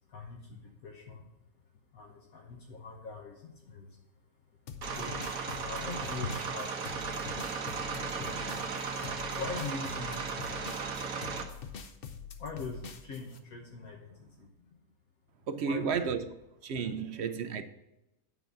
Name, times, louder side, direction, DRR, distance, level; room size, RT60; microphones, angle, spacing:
voice 1, 0.1-1.2 1.9-3.9 4.9-5.2 5.6-6.8 7.9-8.7 9.4-10.2 12.4-14.5 15.6-15.9, left 4 dB, 75° left, 1.6 m, -42 dB
sound 1, 4.7-13.4, left 6 dB, 50° left, 0.8 m, -45 dB
sound 2, 4.8-11.4, right 5 dB, 75° right, 1.6 m, -36 dB
voice 2, 15.5-16.3 16.6-17.6, right 6 dB, 60° right, 0.8 m, -32 dB
9.4 x 4.0 x 7.1 m
omnidirectional pair, 1.5 m